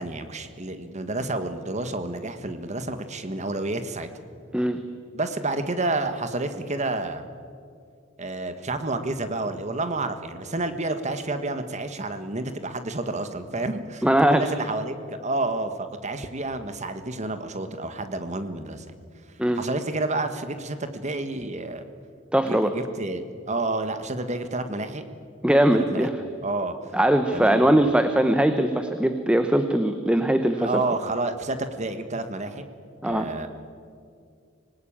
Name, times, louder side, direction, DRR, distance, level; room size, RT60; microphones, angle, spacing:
voice 1, 0.0-4.1 5.1-7.2 8.2-18.8 19.5-21.8 22.4-25.0 25.7-26.1 26.4-26.7 27.3-27.7 30.6-32.6 33.0-33.5, right 2 dB, 35° right, 9 dB, 1.5 m, -30 dB
voice 2, 14.0-14.4 19.4-19.6 22.3-22.7 25.4-26.2 26.9-30.8 33.0-33.3, right 1 dB, 5° right, 8 dB, 0.9 m, -21 dB
25.5 x 19.0 x 8.8 m, 2.4 s
head